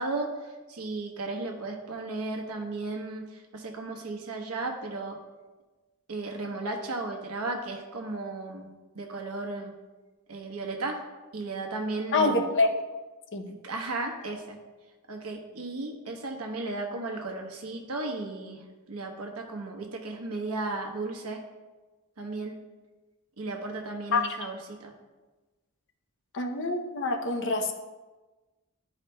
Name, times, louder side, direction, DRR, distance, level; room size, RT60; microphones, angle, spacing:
voice 1, 0.0-5.2 6.1-8.7 8.9-9.7 10.3-11.0 11.3-12.4 13.5-14.6 15.1-18.6 18.9-21.4 22.2-22.6 23.4-24.9, right 2 dB, 75° right, 2 dB, 1.0 m, -35 dB
voice 2, 12.1-12.8 13.3-13.4 24.1-24.2 26.3-27.7, left 3 dB, 55° left, 5 dB, 0.7 m, -26 dB
11.5 x 4.8 x 2.2 m, 1.2 s
head